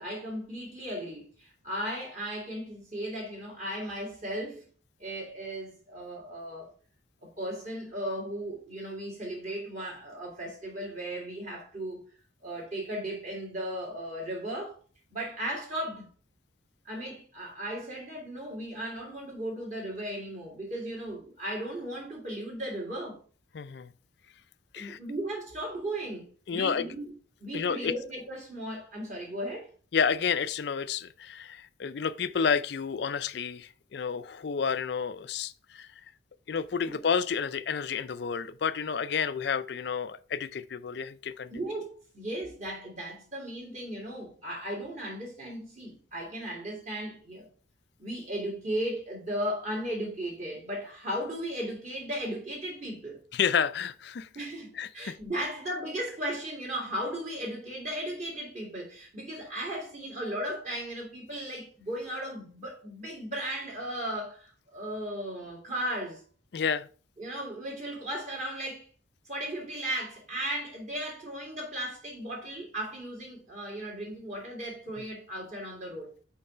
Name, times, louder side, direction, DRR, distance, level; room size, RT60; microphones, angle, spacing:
voice 1, 0.0-4.6 5.0-6.7 7.2-12.0 12.4-14.8 15.1-16.1 16.8-23.2 24.8-26.3 26.5-27.1 27.4-29.7 36.9-37.0 41.5-47.5 48.0-53.2 54.4-66.2 67.2-68.9 69.3-76.1, right 1 dB, 35° right, 2.2 m, -36 dB
voice 2, 23.5-23.9 24.7-25.0 26.5-26.9 27.5-27.9 29.9-35.9 36.5-41.5 53.3-54.3 54.7-55.5 66.5-66.9, left 6 dB, 55° left, 0.4 m, -30 dB
5.3 x 4.8 x 5.5 m
head